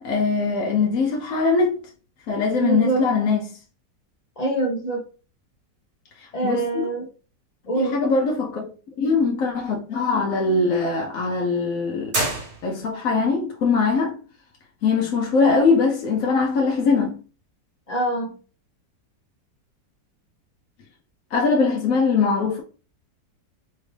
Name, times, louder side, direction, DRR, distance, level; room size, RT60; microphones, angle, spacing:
voice 1, 0.0-1.7 2.3-3.6 6.2-6.6 7.8-8.7 9.0-12.2 12.6-14.2 14.8-17.2 21.3-22.6, left 4 dB, 60° left, 1.0 m, -21 dB
voice 2, 2.6-3.0 4.4-5.0 6.3-7.0 7.7-8.0 17.9-18.3, right 3 dB, 35° left, 0.7 m, -24 dB
sound 1, 12.1-13.1, right 2 dB, 60° right, 2.4 m, -27 dB
4.3 x 2.5 x 3.2 m
omnidirectional pair, 1.9 m